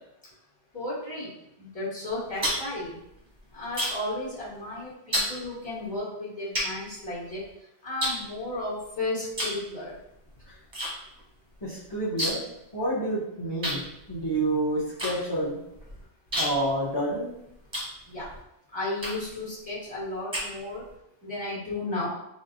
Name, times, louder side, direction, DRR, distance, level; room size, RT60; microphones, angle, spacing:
voice 1, 0.7-1.3 1.6-3.0 3.5-7.4 7.8-10.0 18.1-18.3 18.7-20.9 21.2-22.1, left 2 dB, 5° left, -10 dB, 1.3 m, -34 dB
sound 1, 2.1-4.2 4.4-4.7 5.1-5.3 6.0-6.1 6.5-7.5 8.0-8.9 9.3-9.6 9.9-10.9 11.2-11.3 11.5-12.6 12.8-12.9 13.6-18.4 19.0-19.4 19.9-20.9, equal, 25° right, 0.8 m, -31 dB
voice 2, 11.6-12.4 12.7-13.8 14.1-15.6 16.4-17.3, right 1 dB, 25° left, -11 dB, 0.8 m, -28 dB
4.0 x 2.0 x 2.6 m, 0.82 s
omnidirectional pair, 1.2 m